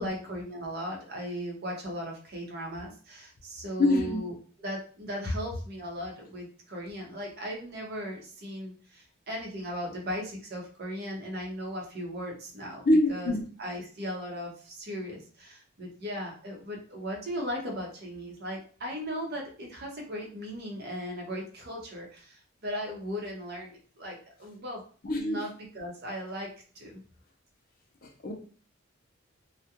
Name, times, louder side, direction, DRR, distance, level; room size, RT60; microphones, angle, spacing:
voice 1, 0.0-12.8 13.1-13.3 13.6-24.8 25.1-26.5 26.7-27.0, equal, 50° right, -1 dB, 0.8 m, -37 dB
voice 2, 3.8-4.2 12.9-13.4 25.0-25.4 28.2-28.3, left 1 dB, 45° left, 3 dB, 0.5 m, -24 dB
2.3 x 2.1 x 2.8 m, 0.40 s
head